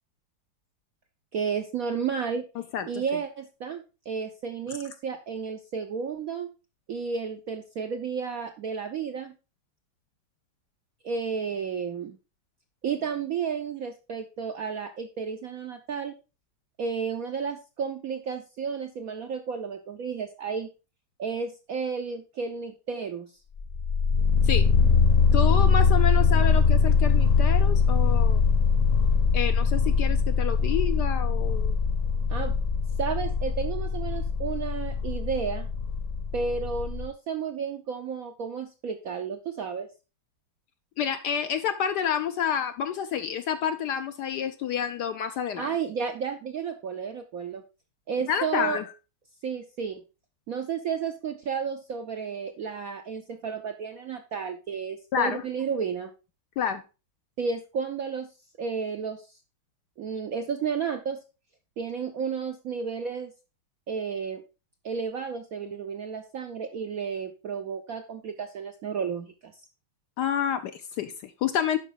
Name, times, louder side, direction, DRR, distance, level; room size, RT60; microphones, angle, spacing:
voice 1, 1.3-2.4 2.9-6.5 6.9-9.3 11.0-12.2 12.8-16.2 16.8-20.7 21.2-23.3 32.3-32.5 33.0-35.7 36.3-39.9 45.6-47.6 48.1-48.8 49.4-50.0 50.5-56.1 57.4-58.3 58.6-59.4 60.0-61.2 61.8-63.3 63.9-64.4 64.8-69.5, right 6 dB, 70° right, 5 dB, 0.8 m, -32 dB
sound 1, 23.6-37.1, left 5 dB, 50° left, 1.1 m, -22 dB
voice 2, 25.3-28.4 29.3-31.8 41.0-45.7 48.3-48.8 55.1-55.4 56.6-56.8 70.2-71.8, left 8 dB, 70° left, 9 dB, 1.0 m, -29 dB
11.5 x 5.0 x 3.8 m, 0.31 s
omnidirectional pair, 2.2 m